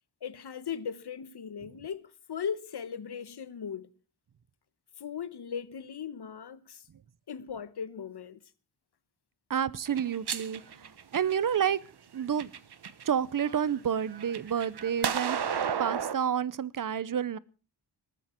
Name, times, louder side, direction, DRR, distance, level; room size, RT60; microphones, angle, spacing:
voice 1, 0.2-3.9 5.0-6.8 7.3-8.4, left 7 dB, 70° left, 1.1 m, -38 dB
voice 2, 9.5-10.6 11.1-11.8 12.1-12.5 13.0-15.4 15.8-17.4, right 8 dB, 50° right, 0.7 m, -29 dB
sound 1, 9.9-11.6 12.2-13.0 13.4-16.2, right 7 dB, 70° right, 1.1 m, -33 dB
19.0 x 13.5 x 4.4 m
wide cardioid pair, 145°, 41 cm